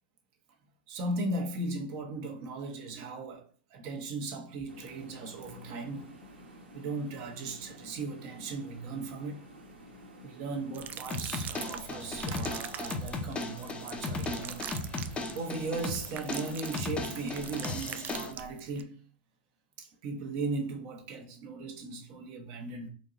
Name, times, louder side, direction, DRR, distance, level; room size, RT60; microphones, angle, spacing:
voice 1, 0.9-6.1 6.7-9.5 10.2-14.7 15.1-19.0 19.8-22.9, right 3 dB, 50° right, 1.1 m, -37 dB
sound 1, 4.7-18.2, equal, 90° right, 1.4 m, -51 dB
sound 2, 10.7-18.8, right 9 dB, 30° right, 0.4 m, -43 dB
sound 3, 11.1-18.3, left 3 dB, 20° left, 0.7 m, -36 dB
4.4 x 2.8 x 2.5 m
hypercardioid pair, 105°, 6 cm